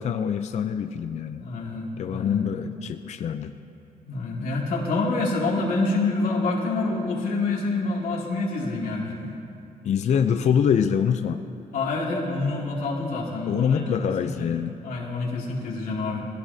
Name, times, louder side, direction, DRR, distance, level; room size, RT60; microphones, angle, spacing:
voice 1, 0.0-1.4 2.0-3.5 9.8-11.4 13.5-14.8, left 7 dB, 50° left, 8 dB, 0.5 m, -24 dB
voice 2, 1.3-2.4 4.1-9.3 11.7-13.8 14.2-14.5 14.8-16.3, left 3 dB, 80° left, -4 dB, 2.4 m, -27 dB
22.5 x 16.5 x 2.8 m, 2.6 s
wide cardioid pair, 165°, 15 cm